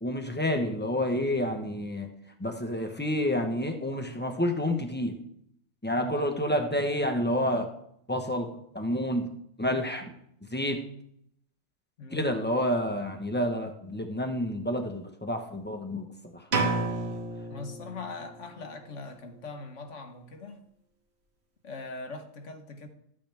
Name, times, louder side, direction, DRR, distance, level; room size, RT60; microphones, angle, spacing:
voice 1, 0.0-2.1 2.4-5.2 5.8-7.7 8.1-8.5 8.7-9.3 9.6-10.0 10.5-10.8 12.1-16.1 16.3-16.4, left 1 dB, 10° left, 1.0 m, -29 dB
voice 2, 6.0-6.4 12.0-12.3 17.5-20.6 21.6-22.9, left 3 dB, 65° left, 1.4 m, -41 dB
sound 1, 16.5-18.4, right 3 dB, 50° right, 1.5 m, -30 dB
13.5 x 8.8 x 3.5 m
omnidirectional pair, 1.4 m